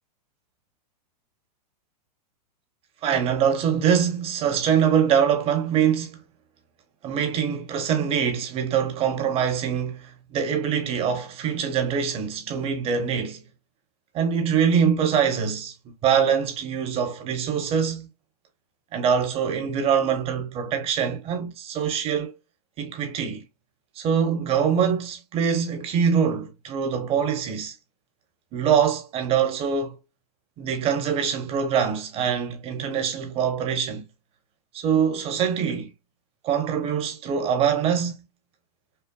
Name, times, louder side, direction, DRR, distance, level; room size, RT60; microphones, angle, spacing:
voice 1, 3.0-6.2 7.0-13.4 14.1-15.7 16.0-18.1 18.9-22.4 22.8-23.4 24.0-27.7 28.5-29.9 30.6-34.0 34.7-35.9 36.4-38.2, right 7 dB, 30° right, 1.1 m, -24 dB
5.7 x 2.1 x 2.3 m
hypercardioid pair, 135°, 20 cm